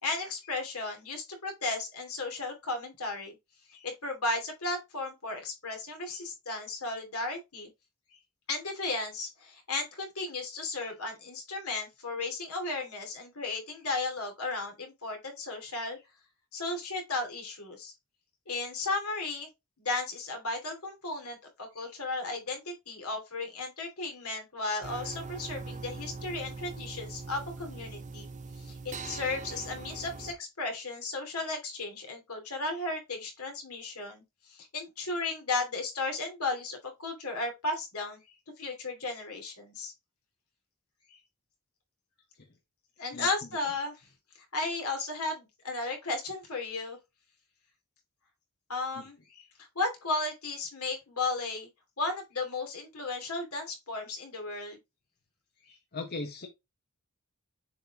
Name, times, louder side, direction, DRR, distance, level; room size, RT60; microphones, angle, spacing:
voice 1, 0.0-3.3 3.7-7.7 8.5-16.0 16.5-17.9 18.5-19.5 19.8-28.3 28.6-34.2 34.5-38.2 38.6-39.9 43.0-44.0 44.5-47.0 48.7-49.4 49.7-51.7 52.0-54.8, left 3 dB, 80° left, 2.6 m, -35 dB
sound 1, 24.8-30.3, right 3 dB, 35° right, 0.7 m, -41 dB
voice 2, 55.9-56.5, left 3 dB, 45° left, 1.0 m, -37 dB
7.1 x 4.1 x 3.5 m
head